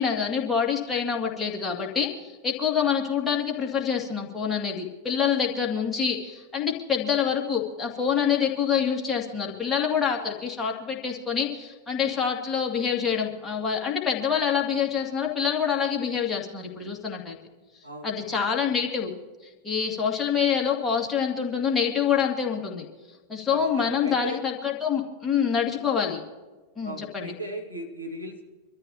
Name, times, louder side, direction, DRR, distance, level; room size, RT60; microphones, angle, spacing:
voice 1, 0.0-17.3 18.0-19.1 19.6-22.9 23.3-26.2 26.8-27.3, left 7 dB, 15° left, -1 dB, 2.4 m, -26 dB
voice 2, 17.8-18.4 23.5-24.4 26.8-28.4, right 1 dB, 85° right, 2 dB, 1.9 m, -37 dB
25.5 x 13.5 x 2.9 m, 1.3 s
figure-of-eight pair, 90°, 0 cm